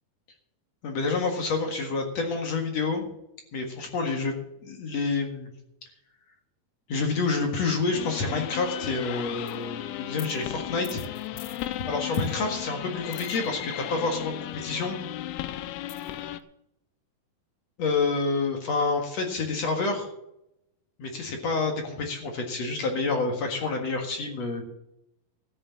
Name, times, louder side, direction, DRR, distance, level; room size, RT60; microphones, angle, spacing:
voice 1, 0.8-3.0 3.5-5.5 6.9-11.0 11.3-11.4 11.9-15.0 17.8-20.1 21.0-24.6, left 4 dB, 50° left, 3 dB, 2.4 m, -28 dB
sound 1, 7.9-16.4, left 13 dB, 85° left, 2.7 m, -35 dB
14.5 x 6.6 x 8.3 m, 0.83 s
omnidirectional pair, 4.5 m